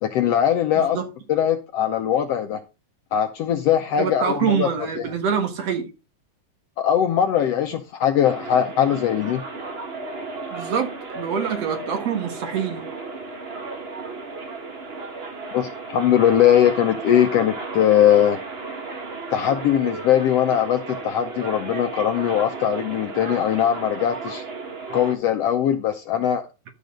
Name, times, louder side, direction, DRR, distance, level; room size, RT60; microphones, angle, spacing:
voice 1, 0.0-1.0 1.3-2.6 3.1-5.0 6.8-9.4 15.5-18.4 19.3-24.4 24.9-26.5, left 10 dB, 70° left, 1.6 m, -20 dB
voice 2, 0.8-1.1 4.0-5.9 10.5-12.8, right 7 dB, 60° right, 2.6 m, -25 dB
sound 1, 8.2-25.1, right 3 dB, 35° right, 0.9 m, -34 dB
11.5 x 6.7 x 3.8 m
omnidirectional pair, 3.5 m